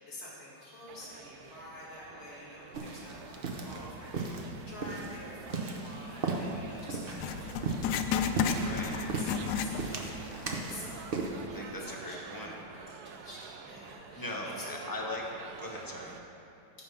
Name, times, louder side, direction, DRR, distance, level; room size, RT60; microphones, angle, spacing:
voice 1, 0.0-12.4 12.7-14.8, left 1 dB, 50° left, -7 dB, 2.9 m, -48 dB
sound 1, 0.9-16.2, right 6 dB, 70° right, 0.9 m, -49 dB
sound 2, 2.7-11.3, right 3 dB, 50° right, 0.7 m, -37 dB
Writing, 7.2-10.2 10.5-10.6 11.3-11.4, left 7 dB, 75° left, 1.2 m, -32 dB
voice 2, 8.6-8.9 11.5-12.6 14.2-15.2 15.6-16.2, left 2 dB, 20° left, -1 dB, 0.5 m, -39 dB
14.5 x 5.4 x 5.6 m, 2.7 s
omnidirectional pair, 2.1 m